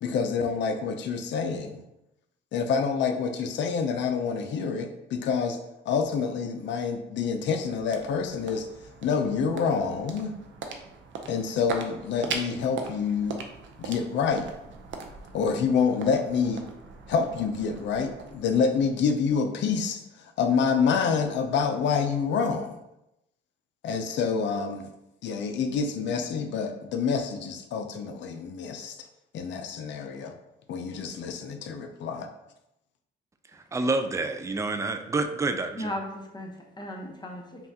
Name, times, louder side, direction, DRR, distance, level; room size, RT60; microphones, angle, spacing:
voice 1, 0.0-1.8 2.5-5.6 5.9-8.7 9.0-10.4 11.3-13.4 13.8-14.5 15.3-16.6 17.1-22.8 23.8-24.9 25.2-28.9 29.3-30.3 30.7-32.3, left 5 dB, 65° left, 5 dB, 0.5 m, -27 dB
sound 1, 7.2-19.3, right 4 dB, 70° right, 0.6 m, -40 dB
voice 2, 33.5-35.9, right 3 dB, 15° right, 7 dB, 0.4 m, -28 dB
voice 3, 35.8-37.7, left 1 dB, 20° left, 1 dB, 0.8 m, -36 dB
5.4 x 2.3 x 2.7 m, 0.87 s
cardioid pair, 90°, 20 cm